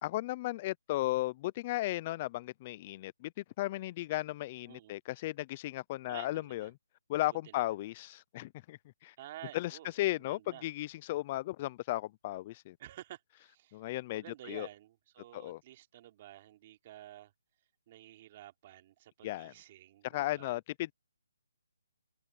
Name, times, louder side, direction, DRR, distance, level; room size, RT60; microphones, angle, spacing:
voice 1, 0.0-6.7 7.1-9.1 9.5-9.7 10.0-12.8 13.7-14.7 15.3-15.6 19.2-19.5 20.1-20.9, left 17 dB, 20° left, 0.5 m, -35 dB
voice 2, 4.7-5.0 6.1-6.7 7.3-7.7 9.2-10.7 12.8-13.8 14.1-17.3 17.9-20.6, right 13 dB, 25° right, 3.2 m, -52 dB
hypercardioid pair, 170°, 0 cm